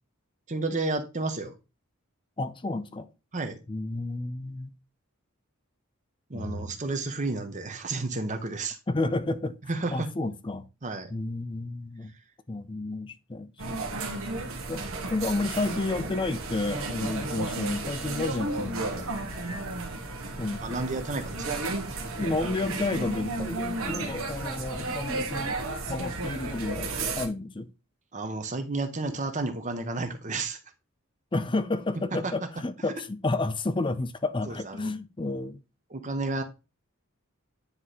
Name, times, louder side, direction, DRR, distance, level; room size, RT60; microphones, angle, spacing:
voice 1, 0.5-1.6 3.3-3.6 6.3-8.8 9.6-10.1 10.8-11.1 20.6-21.6 28.1-30.6 32.1-32.5 34.4-34.9 35.9-36.4, right 3 dB, 35° right, 1.0 m, -31 dB
voice 2, 2.4-3.1 3.7-4.7 6.3-6.6 8.9-9.6 9.9-10.6 11.1-12.1 12.5-13.9 14.7-19.1 19.9-20.0 20.4-20.8 22.0-25.5 25.9-27.7 31.3-35.6, left 2 dB, 25° left, 0.5 m, -31 dB
sound 1, 13.6-27.3, right 2 dB, 75° right, 1.4 m, -33 dB
9.7 x 3.2 x 4.1 m
head